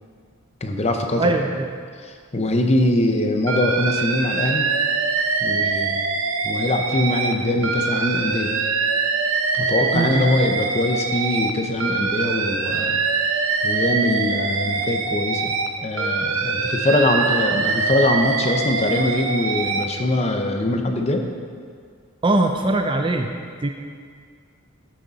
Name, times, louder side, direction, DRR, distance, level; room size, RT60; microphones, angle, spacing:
voice 1, 0.6-1.3 2.0-4.7 5.4-6.0 6.4-8.5 9.5-13.0 13.6-15.5 15.8-21.3, left 1 dB, 30° left, 4 dB, 0.7 m, -22 dB
voice 2, 1.2-1.7 9.9-10.3 22.2-23.3 23.6-23.7, right 2 dB, 20° right, 4 dB, 0.5 m, -21 dB
Alarm, 3.5-7.3 7.6-11.5 11.8-15.7 16.0-19.8, right 4 dB, 65° right, 0.8 m, -23 dB
13.5 x 6.6 x 4.1 m, 2.1 s
head